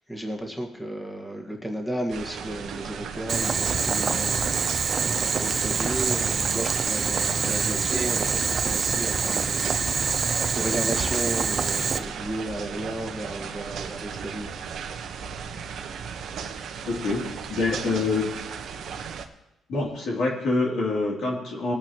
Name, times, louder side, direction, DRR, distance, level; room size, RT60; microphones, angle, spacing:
voice 1, 0.1-4.7 5.0-14.5, right 1 dB, 5° left, 0 dB, 1.7 m, -34 dB
sound 1, 2.1-19.3, right 6 dB, 70° right, 1.0 m, -36 dB
Boiling, 3.3-12.0, right 5 dB, 45° right, 0.7 m, -25 dB
voice 2, 16.8-18.3 19.7-21.7, left 3 dB, 70° left, -2 dB, 3.0 m, -26 dB
20.0 x 8.8 x 3.0 m, 0.92 s
cardioid pair, 90°, 0 cm